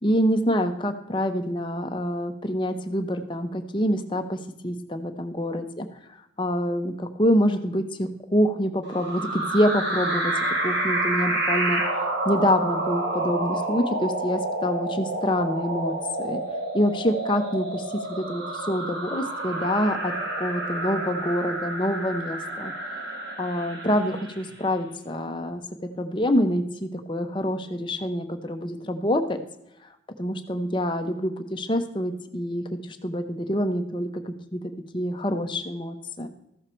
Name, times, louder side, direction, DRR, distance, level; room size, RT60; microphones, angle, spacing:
voice 1, 0.0-5.9 6.4-10.3 10.6-11.8 12.2-16.4 16.7-20.1 20.4-22.7 23.4-25.6 26.0-29.4 30.2-34.6 34.9-36.3, equal, 25° left, 6 dB, 0.8 m, -26 dB
sound 1, 8.8-24.5, right 2 dB, 65° right, 1.8 m, -29 dB
14.5 x 6.7 x 4.4 m, 0.81 s
head